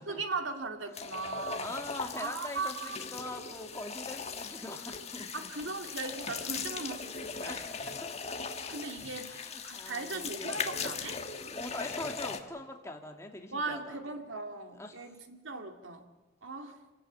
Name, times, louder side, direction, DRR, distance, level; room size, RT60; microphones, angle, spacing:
voice 1, 0.1-1.8 2.2-3.0 5.3-7.6 8.6-9.4 9.6-11.2 13.5-16.1 16.4-16.8, right 3 dB, 90° right, 5 dB, 2.3 m, -38 dB
sound 1, 0.9-12.4, left 5 dB, 35° left, 1.5 m, -39 dB
voice 2, 1.6-5.5 6.5-6.6 7.2-8.6 9.3-10.6 11.5-14.0 14.7-15.0 15.5-15.6, left 2 dB, 15° left, 2 dB, 2.3 m, -43 dB
27.0 x 17.5 x 8.5 m, 1.2 s
head